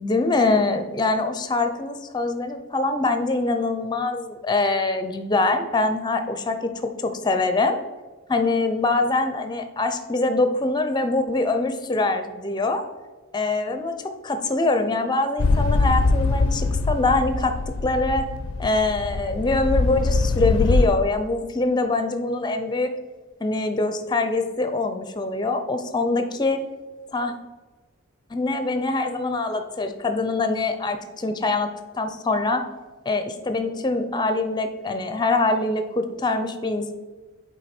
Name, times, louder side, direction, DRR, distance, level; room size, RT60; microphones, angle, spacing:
voice 1, 0.0-7.8 8.3-12.8 13.3-13.9 14.2-17.6 17.8-18.3 18.6-22.9 23.4-26.6 27.1-27.3 28.3-31.7 31.9-32.6 33.1-36.9, left 2 dB, 20° left, 8 dB, 0.5 m, -24 dB
sound 1, 15.4-20.9, left 3 dB, 75° left, 0.4 m, -22 dB
7.8 x 4.5 x 4.3 m, 1.3 s
head